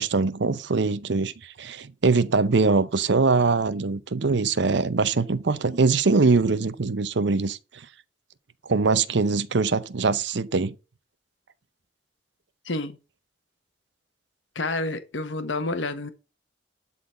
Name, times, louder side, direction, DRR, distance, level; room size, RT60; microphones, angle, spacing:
voice 1, 0.0-7.8 8.7-10.8, right 4 dB, 65° right, 0.7 m, -23 dB
voice 2, 12.6-13.0 14.5-16.1, left 2 dB, 80° left, 1.3 m, -29 dB
12.0 x 4.1 x 6.6 m
head